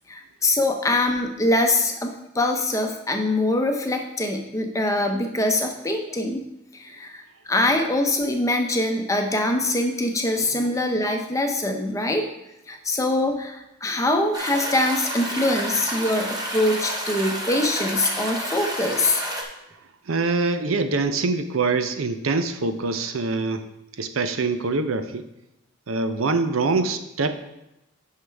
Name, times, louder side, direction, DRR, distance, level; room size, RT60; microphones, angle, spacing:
voice 1, 0.1-6.4 6.7-12.3 12.7-19.2, left 1 dB, 15° left, 4 dB, 0.7 m, -23 dB
sound 1, 14.3-19.4, equal, 20° right, 0.9 m, -30 dB
voice 2, 20.1-23.7 24.0-25.3 25.9-27.4, right 3 dB, 85° right, 9 dB, 0.6 m, -24 dB
9.5 x 5.7 x 3.4 m, 0.90 s
head